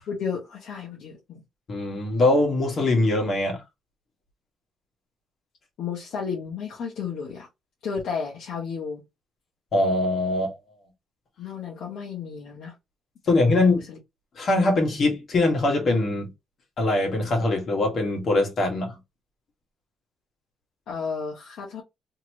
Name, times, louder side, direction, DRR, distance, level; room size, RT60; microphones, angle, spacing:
voice 1, 0.1-1.4 5.8-7.5 7.8-9.0 11.4-12.7 13.5-14.0 20.9-21.8, left 6 dB, 75° left, 0.9 m, -33 dB
voice 2, 1.7-3.6 9.7-10.6 13.3-13.8 14.3-16.3 16.8-19.0, left 2 dB, 50° left, 1.4 m, -22 dB
2.9 x 2.9 x 2.9 m
cardioid pair, 90°, 0 cm